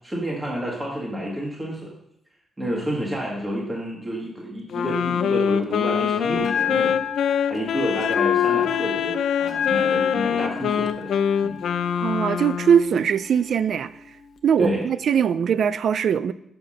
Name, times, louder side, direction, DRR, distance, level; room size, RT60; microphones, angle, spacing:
voice 1, 0.0-1.9 2.6-6.9 7.5-11.2 11.4-11.6 14.6-14.8, equal, 15° right, 1.4 m, -29 dB
Wind instrument woodwind instrument, 4.7-12.9, left 8 dB, 75° left, 0.4 m, -24 dB
Bell, 6.4-14.4, left 9 dB, 55° left, 0.8 m, -32 dB
voice 2, 12.0-13.9 14.4-16.3, right 7 dB, 60° right, 0.3 m, -21 dB
5.8 x 4.9 x 6.2 m
cardioid pair, 135°, 0 cm